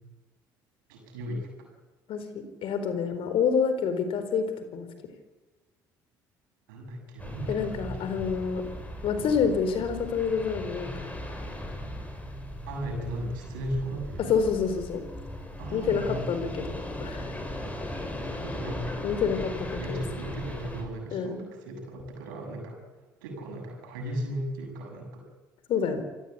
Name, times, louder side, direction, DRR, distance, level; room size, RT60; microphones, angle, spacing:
voice 1, 0.9-1.7 6.7-8.1 12.7-14.3 15.6-16.2 16.6-16.7 18.3-19.0 19.7-22.8 23.2-25.2, equal, 75° right, 2 dB, 7.2 m, -36 dB
voice 2, 2.1-4.5 4.7-4.9 7.5-8.6 9.0-11.0 14.3-15.0 15.7-17.4 19.0-20.0 21.1-21.3 25.7-26.0, left 6 dB, 55° left, 9 dB, 4.2 m, -28 dB
sound 1, 7.2-20.8, left 1 dB, 15° left, 7.2 m, -38 dB
27.5 x 17.5 x 8.5 m, 1.2 s
hypercardioid pair, 55°, 11 cm